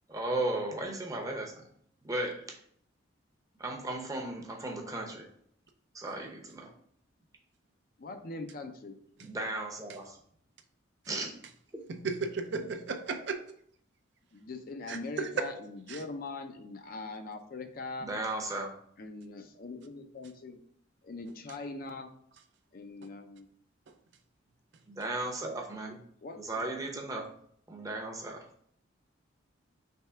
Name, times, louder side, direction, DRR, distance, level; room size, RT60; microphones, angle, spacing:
voice 1, 0.1-1.7 2.0-2.5 3.6-5.3 5.9-6.7 9.2-10.2 11.1-11.4 18.0-18.7 24.9-26.0 26.4-27.3 27.7-28.5, right 2 dB, 15° right, 1 dB, 0.7 m, -35 dB
voice 2, 8.0-9.0 14.3-18.1 19.0-20.6 21.0-22.1 22.7-23.5 26.2-26.7, left 3 dB, 45° left, 6 dB, 0.5 m, -42 dB
voice 3, 12.0-13.4 14.9-15.5 15.9-16.0, right 4 dB, 60° right, 7 dB, 0.4 m, -34 dB
3.5 x 3.2 x 4.3 m, 0.64 s
head